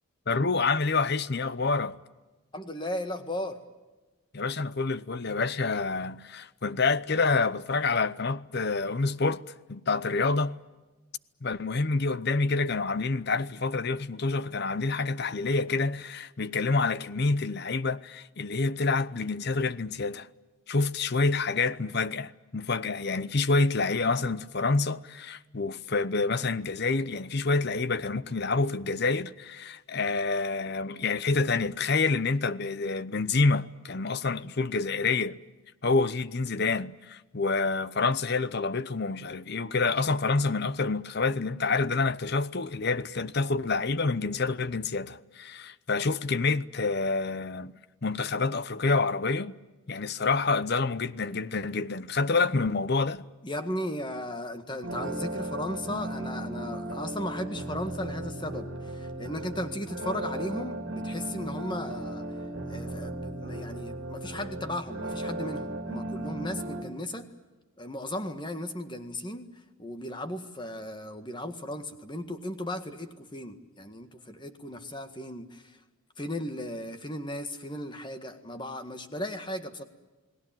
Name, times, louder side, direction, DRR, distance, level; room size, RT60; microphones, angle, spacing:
voice 1, 0.3-2.0 4.3-9.4 9.7-10.6 11.4-20.3 20.7-35.4 35.8-47.7 48.0-49.6 49.9-53.3, left 3 dB, 50° left, 0.8 m, -27 dB
voice 2, 2.5-3.6 53.4-62.3 62.7-67.3 67.8-75.8 76.2-79.8, left 1 dB, 20° left, 1.7 m, -36 dB
sound 1, 54.8-66.8, right 1 dB, 55° right, 2.6 m, -36 dB
29.5 x 19.5 x 9.0 m
head